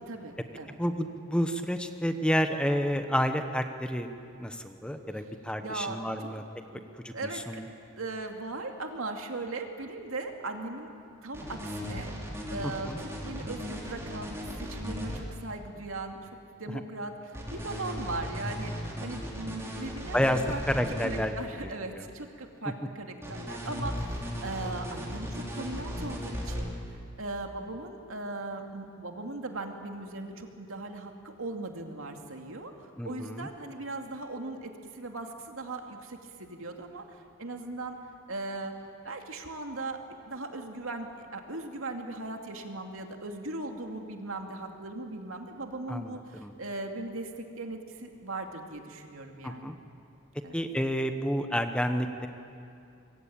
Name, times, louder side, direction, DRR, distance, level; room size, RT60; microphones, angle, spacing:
voice 1, 0.0-0.8 5.6-6.3 6.7-6.8 7.1-7.6 8.0-10.9 11.2-12.1 12.5-16.3 16.6-20.2 20.5-20.6 21.0-38.0 38.3-38.7 39.0-40.0 40.3-49.7 50.4-50.6, right 2 dB, 80° right, 3 dB, 2.5 m, -38 dB
voice 2, 0.8-4.1 4.4-6.4 7.0-7.6 12.6-13.0 16.7-16.8 20.1-21.3 21.9-22.1 22.6-22.7 33.0-33.5 45.9-46.5 49.4-49.8 50.5-52.3, equal, 5° left, 7 dB, 1.0 m, -30 dB
sound 1, 11.3-15.2 17.3-21.2 23.2-26.6, equal, 15° right, 3.8 m, -36 dB
25.5 x 22.5 x 8.8 m, 2.6 s
head